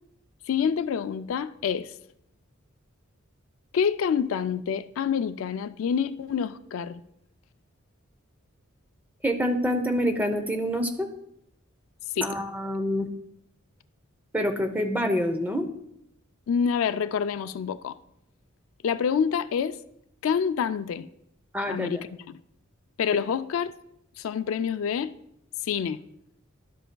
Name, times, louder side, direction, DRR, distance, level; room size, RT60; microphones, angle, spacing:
voice 1, 0.5-1.9 3.7-7.0 12.2-12.4 16.5-17.9 18.8-19.8 20.2-21.1 21.7-22.4 23.0-23.7 24.2-25.2 25.6-26.0, left 7 dB, 70° left, 0.3 m, -27 dB
voice 2, 9.2-11.1 12.2-13.1 14.3-15.7 21.5-22.0, equal, 10° right, 0.6 m, -26 dB
12.0 x 7.7 x 2.2 m
head